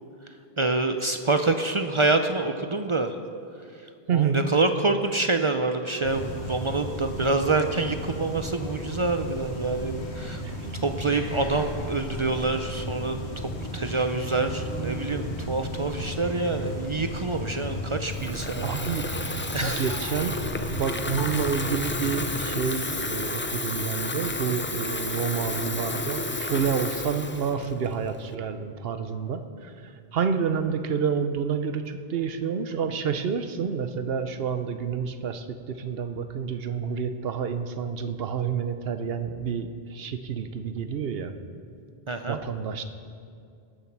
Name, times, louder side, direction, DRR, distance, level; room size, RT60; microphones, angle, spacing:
voice 1, 0.6-3.2 4.1-10.4 10.8-19.1 19.5-20.0 42.1-42.4, right 3 dB, 40° right, 7 dB, 0.5 m, -26 dB
voice 2, 4.1-4.5 10.4-10.7 18.6-19.0 19.6-20.4 20.7-29.7 30.1-41.3 42.3-42.8, right 6 dB, 65° right, 9 dB, 0.9 m, -29 dB
sound 1, 6.0-22.3, equal, 90° left, 1.6 m, -34 dB
Water tap faucet / Fill (with liquid), 18.1-28.3, left 2 dB, 20° left, 0.3 m, -32 dB
19.0 x 7.3 x 5.9 m, 2.4 s
omnidirectional pair, 1.1 m